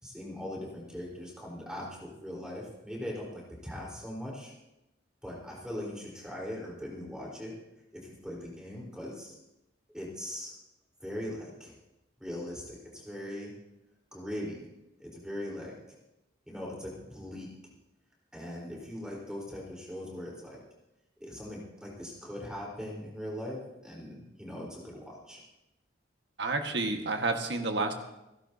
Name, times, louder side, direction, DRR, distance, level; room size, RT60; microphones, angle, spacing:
voice 1, 0.0-4.5 5.2-7.5 7.9-9.4 9.9-10.5 11.0-11.7 12.2-13.5 14.1-14.7 15.0-16.0 16.5-17.5 18.3-20.6 21.2-25.4, left 1 dB, 5° right, -4 dB, 4.2 m, -40 dB
voice 2, 26.4-27.9, right 3 dB, 60° right, 4 dB, 1.6 m, -30 dB
27.5 x 11.5 x 2.8 m, 0.94 s
head